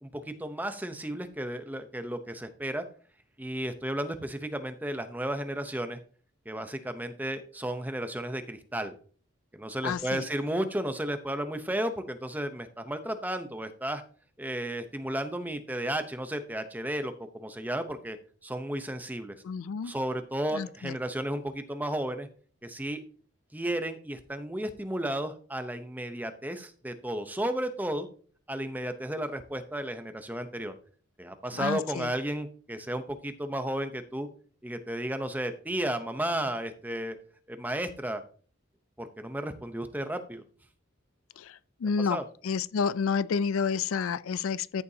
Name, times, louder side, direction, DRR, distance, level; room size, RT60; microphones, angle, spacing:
voice 1, 0.0-2.8 3.4-6.0 6.5-8.9 9.5-14.0 14.4-18.2 18.4-19.4 19.8-22.3 22.6-23.0 23.5-28.1 28.5-30.7 31.2-34.3 34.6-37.2 37.5-38.2 39.0-40.4 42.0-42.3, right 1 dB, 10° right, 0.7 m, -33 dB
voice 2, 9.8-10.3 19.4-19.9 20.5-20.9 31.5-32.1 41.4-41.5 41.8-42.2 42.4-44.8, left 6 dB, 80° left, 0.4 m, -29 dB
13.5 x 6.9 x 2.8 m
head